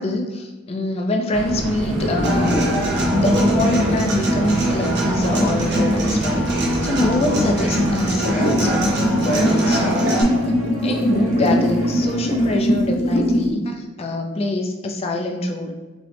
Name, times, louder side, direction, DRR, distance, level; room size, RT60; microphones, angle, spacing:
voice 1, 0.0-2.6 3.1-10.3 10.8-15.7, left 1 dB, 30° left, 3 dB, 0.4 m, -24 dB
sound 1, 1.3-12.6, right 1 dB, 80° right, 0.7 m, -28 dB
sound 2, 1.8-3.3 4.9-5.1 7.4-7.5 7.7-13.5, equal, 65° left, 0.8 m, -22 dB
Human voice / Acoustic guitar, 2.2-10.2, equal, 50° right, 0.9 m, -22 dB
3.7 x 3.0 x 3.3 m, 1.2 s
head